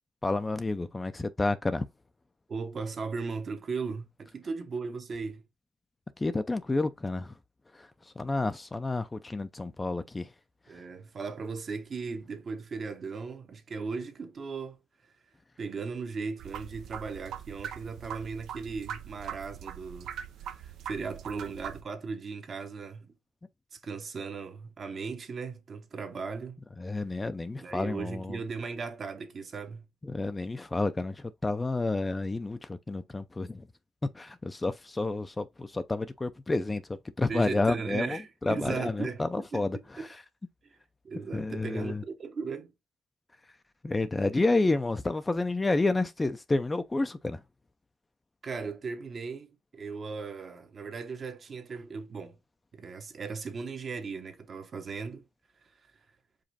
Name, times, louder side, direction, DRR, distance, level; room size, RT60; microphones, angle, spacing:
voice 1, 0.2-1.8 6.2-7.3 7.7-7.9 8.2-10.3 10.7-10.8 26.8-28.4 30.0-33.7 34.1-40.1 41.3-42.0 43.8-47.4, left 2 dB, 20° left, 0.4 m, -30 dB
voice 2, 2.5-5.5 10.7-14.8 15.0-15.1 15.6-20.2 20.4-23.1 23.7-26.6 27.6-29.9 37.3-39.6 40.0-40.1 40.6-40.8 41.0-42.7 48.4-52.4 52.7-55.3 55.6-55.7, right 4 dB, 45° right, 1.0 m, -37 dB
sound 1, 16.4-21.8, right 9 dB, 75° right, 0.6 m, -41 dB
5.1 x 2.4 x 4.1 m
cardioid pair, 90°, 0 cm